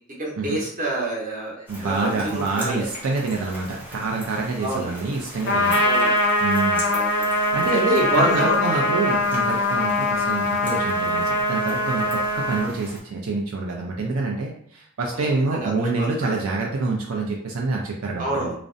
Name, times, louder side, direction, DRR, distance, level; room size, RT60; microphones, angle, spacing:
voice 1, 0.2-2.9 4.6-4.9 5.8-6.1 6.9-7.3 7.7-8.8 15.1-16.3 18.2-18.5, right 1 dB, 40° right, -3 dB, 0.7 m, -27 dB
sound 1, 1.7-13.0, equal, 10° right, 0.6 m, -40 dB
voice 2, 1.7-5.8 6.4-6.8 7.5-18.5, right 3 dB, 75° right, -1 dB, 0.4 m, -27 dB
Trumpet, 5.5-12.7, left 1 dB, 55° left, 0.4 m, -22 dB
2.5 x 2.0 x 2.5 m, 0.65 s
head